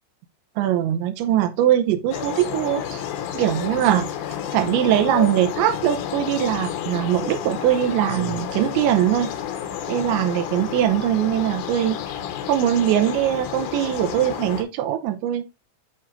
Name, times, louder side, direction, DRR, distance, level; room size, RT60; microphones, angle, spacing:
voice 1, 0.6-3.0 3.3-4.1 4.5-9.3 9.9-12.0 12.5-15.4, right 11 dB, 80° right, 2.8 m, -21 dB
sound 1, 2.1-14.6, left 9 dB, 80° left, 3.6 m, -30 dB
10.5 x 3.8 x 2.6 m
omnidirectional pair, 5.9 m